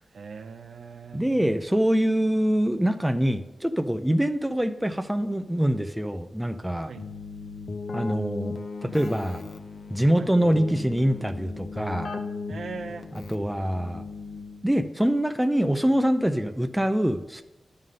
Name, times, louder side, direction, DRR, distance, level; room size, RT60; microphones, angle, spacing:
voice 1, 0.1-1.6 6.8-7.1 10.1-10.3 12.5-13.1, right 5 dB, 80° right, 10 dB, 0.5 m, -40 dB
voice 2, 1.1-6.9 7.9-8.6 8.8-9.4 9.9-12.1 13.3-14.0 14.6-17.4, equal, 5° right, 9 dB, 0.4 m, -24 dB
Keyboard (musical), 7.0-14.8, left 4 dB, 50° left, 0.6 m, -37 dB
11.0 x 3.8 x 6.4 m, 0.96 s
wide cardioid pair, 180°, 0 cm